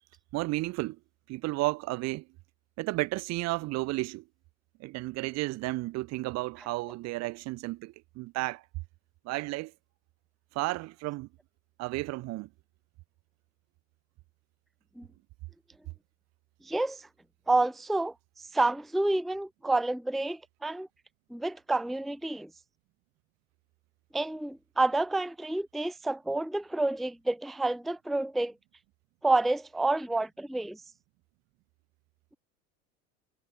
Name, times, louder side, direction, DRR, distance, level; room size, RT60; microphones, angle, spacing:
voice 1, 0.3-1.0 1.3-2.3 2.8-4.2 4.8-8.6 9.2-9.7 10.5-11.3 11.8-12.5, right 21 dB, 40° right, 0.8 m, -32 dB
voice 2, 16.7-17.0 17.5-18.1 18.5-20.9 21.3-22.5 24.1-28.5 29.2-30.8, right 2 dB, ahead, 0.6 m, -29 dB
figure-of-eight pair, 75°, 42 cm